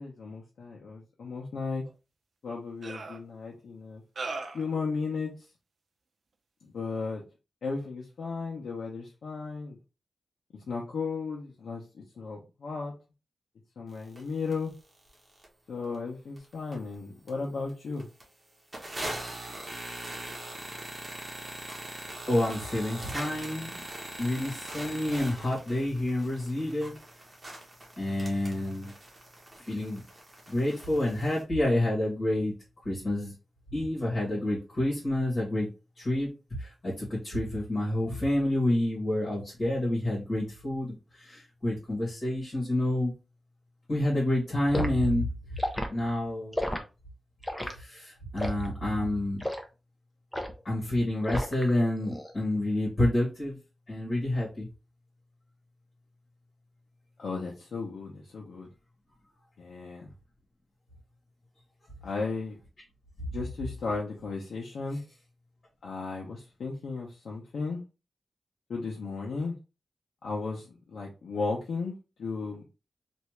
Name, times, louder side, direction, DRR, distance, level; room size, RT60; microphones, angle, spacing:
voice 1, 0.0-1.8 2.4-4.0 4.5-5.3 6.6-7.2 7.6-9.8 10.5-12.9 13.8-14.7 15.7-18.1 57.2-58.7 59.6-60.1 62.0-62.6 63.3-65.0 65.8-67.8 68.7-69.5 70.2-72.6, left 4 dB, 90° left, -2 dB, 0.7 m, -35 dB
sound 1, 1.9-2.0 2.8-3.2 4.2-4.7, right 3 dB, 60° right, 0.6 m, -37 dB
sound 2, 14.2-14.3 14.5-14.6 15.1-15.5 15.9-16.0 16.4-17.0 17.3-17.4 17.7-17.8 18.0-18.2 18.7-31.4, right 1 dB, 20° right, 1.1 m, -41 dB
voice 2, 22.3-23.8 24.2-26.9 28.0-28.9 29.7-30.0 30.5-32.5 32.9-33.3 33.7-35.7 36.0-36.3 36.6-43.1 43.9-45.3 45.9-46.6 47.7-49.4 50.7-53.6 53.9-54.7, left 1 dB, 45° left, -5 dB, 1.8 m, -28 dB
Liquid, 44.7-44.9 45.6-45.9 46.5-46.8 47.4-47.7 48.4-48.7 49.4-49.6 50.3-50.6 51.3-51.7 52.0-52.3, left 1 dB, 10° left, 0.6 m, -31 dB
3.3 x 2.6 x 3.1 m, 0.30 s
wide cardioid pair, 130°, 0 cm